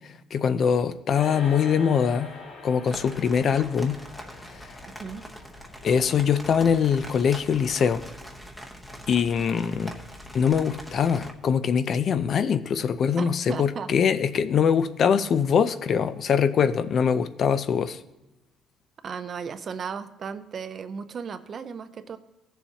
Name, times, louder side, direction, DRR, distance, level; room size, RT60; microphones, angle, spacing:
voice 1, 0.3-2.4 2.6-4.0 4.5-4.7 5.8-8.0 9.1-9.9 10.3-18.0, left 7 dB, 45° left, 13 dB, 0.4 m, -23 dB
sound 1, 1.1-10.7, left 2 dB, 60° left, 3.8 m, -45 dB
sound 2, 2.8-11.3, equal, 5° left, 0.9 m, -42 dB
voice 2, 13.2-13.9 19.0-22.2, right 6 dB, 35° right, 11 dB, 0.5 m, -35 dB
16.0 x 7.1 x 2.8 m, 1.0 s
cardioid pair, 155°, 0 cm